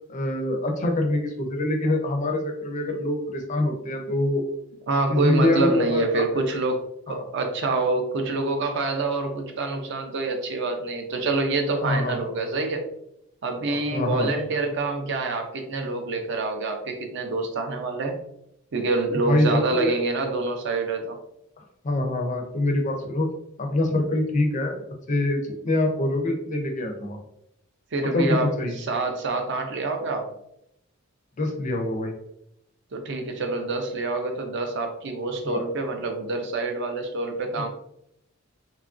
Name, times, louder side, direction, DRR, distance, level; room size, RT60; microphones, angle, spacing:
voice 1, 0.1-4.4 5.1-6.4 7.1-7.3 11.8-12.2 13.7-14.3 19.3-19.9 21.8-23.3 23.6-24.8 25.1-27.2 28.1-28.8 31.4-32.1 35.4-35.6 37.6-37.7, left 1 dB, 35° left, 3 dB, 0.4 m, -25 dB
voice 2, 4.9-12.8 13.4-18.2 18.7-21.2 27.9-28.5 28.8-30.3 32.9-37.7, right 3 dB, 55° right, 4 dB, 0.4 m, -26 dB
2.9 x 2.4 x 2.4 m, 0.79 s
head